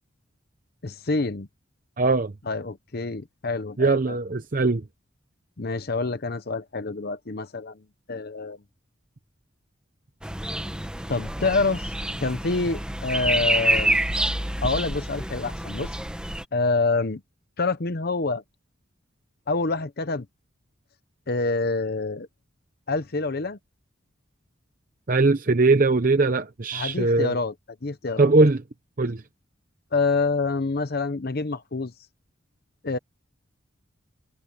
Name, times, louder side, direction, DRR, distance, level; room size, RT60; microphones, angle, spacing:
voice 1, 0.8-1.5 2.5-4.2 5.6-7.8 8.1-8.6 11.1-14.0 14.6-15.9 16.5-17.2 17.6-18.4 19.5-20.3 21.3-22.3 22.9-23.6 26.7-27.5 27.8-28.3 29.9-31.9 32.8-33.0, left 3 dB, 50° left, 0.8 m, -27 dB
voice 2, 2.0-2.3 3.8-4.8 25.1-27.4 28.2-28.6 29.0-29.2, right 3 dB, 45° right, 0.7 m, -20 dB
sound 1, 10.2-16.4, right 1 dB, 5° right, 1.5 m, -27 dB
head